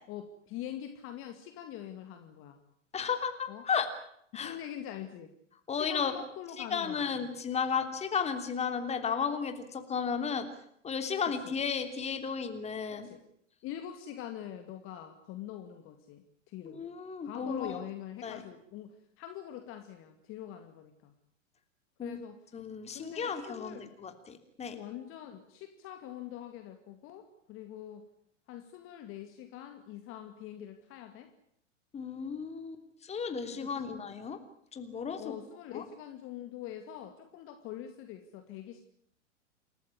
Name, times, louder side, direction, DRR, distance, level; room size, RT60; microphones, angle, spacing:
voice 1, 0.1-2.6 3.5-3.6 4.4-5.3 5.7-7.3 11.4-11.5 12.9-13.2 13.6-16.8 17.2-21.1 22.0-22.4 22.9-23.9 24.7-28.1 28.5-31.3 33.5-34.0 35.2-38.8, left 11 dB, 35° left, 7 dB, 2.3 m, -44 dB
voice 2, 2.9-3.9 4.3-4.6 5.7-6.1 6.7-10.5 10.8-13.1 16.6-17.8 18.2-18.4 22.0-22.2 22.5-24.8 31.9-34.4 34.7-35.3 35.7-35.8, left 6 dB, 15° left, 7 dB, 3.2 m, -34 dB
28.0 x 14.5 x 9.8 m, 0.70 s
figure-of-eight pair, 100°, 37 cm